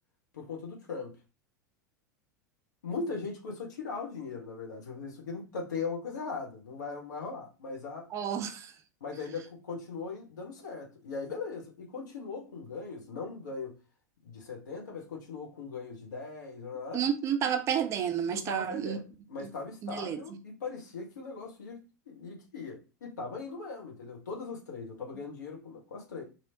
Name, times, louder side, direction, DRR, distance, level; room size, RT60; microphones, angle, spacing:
voice 1, 0.3-1.2 2.8-8.1 9.0-13.8 14.2-17.0 18.3-19.0 19.3-26.2, left 4 dB, 65° left, 1.2 m, -39 dB
voice 2, 8.1-8.7 16.9-19.0 19.4-19.5 19.8-20.4, right 8 dB, 30° right, 0.4 m, -31 dB
3.0 x 2.8 x 2.8 m
figure-of-eight pair, 85°, 10 cm